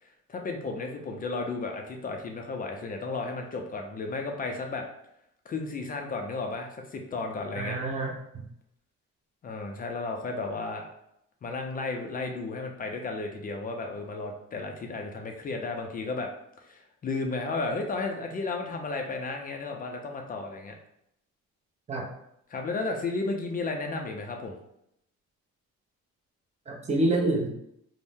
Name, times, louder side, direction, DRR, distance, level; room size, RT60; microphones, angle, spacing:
voice 1, 0.0-4.8 5.5-7.8 9.4-10.9 11.4-16.3 16.7-20.7 22.5-24.6, left 3 dB, 30° left, 2 dB, 0.4 m, -33 dB
voice 2, 7.5-8.4 21.9-22.0 26.7-27.5, right 2 dB, 20° right, -1 dB, 0.6 m, -27 dB
2.6 x 2.0 x 3.4 m, 0.76 s
cardioid pair, 130°, 31 cm